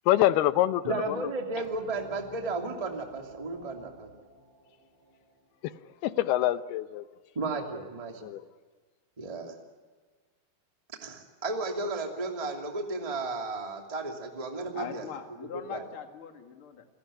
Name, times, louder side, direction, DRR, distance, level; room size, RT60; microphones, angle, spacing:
voice 1, 0.1-1.2 5.6-5.7 6.0-7.0 8.2-8.4, left 14 dB, 85° left, 14 dB, 2.9 m, -25 dB
voice 2, 0.8-4.1 7.3-8.3 9.2-9.6 11.0-15.1 15.4-15.8, right 3 dB, 10° right, 3 dB, 2.1 m, -34 dB
sound 1, 1.6-6.7, right 2 dB, 35° right, 7.0 m, -53 dB
voice 3, 14.7-16.8, left 8 dB, 40° left, 6 dB, 2.4 m, -41 dB
28.5 x 16.5 x 9.9 m, 1.4 s
omnidirectional pair, 4.4 m